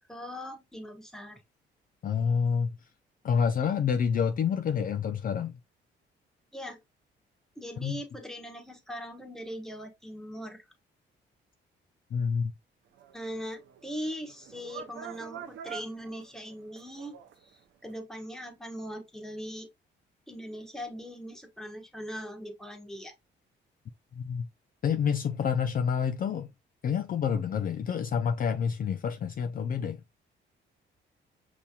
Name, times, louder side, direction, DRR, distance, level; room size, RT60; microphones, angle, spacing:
voice 1, 0.1-1.4 6.5-6.8 7.6-10.6 13.1-17.2 17.5-19.7 20.3-23.1, equal, ahead, 1.1 m, -40 dB
voice 2, 2.0-2.7 3.2-5.5 7.8-8.0 12.1-12.5 24.2-24.5 24.8-26.5 26.8-30.0, left 7 dB, 45° left, 0.4 m, -28 dB
sound 1, 13.0-17.4 17.9-18.0, right 9 dB, 70° right, 0.6 m, -45 dB
5.4 x 2.9 x 2.3 m
cardioid pair, 90°, 20 cm